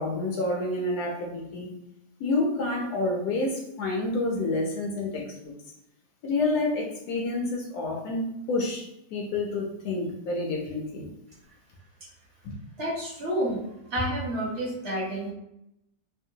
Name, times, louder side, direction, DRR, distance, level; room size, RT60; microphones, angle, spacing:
voice 1, 0.0-1.7 2.2-5.5 6.2-11.1 12.4-12.5, left 2 dB, 70° left, 0 dB, 1.0 m, -29 dB
voice 2, 12.8-13.6 13.9-15.3, equal, 50° right, -5 dB, 1.0 m, -29 dB
3.5 x 2.1 x 2.7 m, 0.82 s
omnidirectional pair, 1.9 m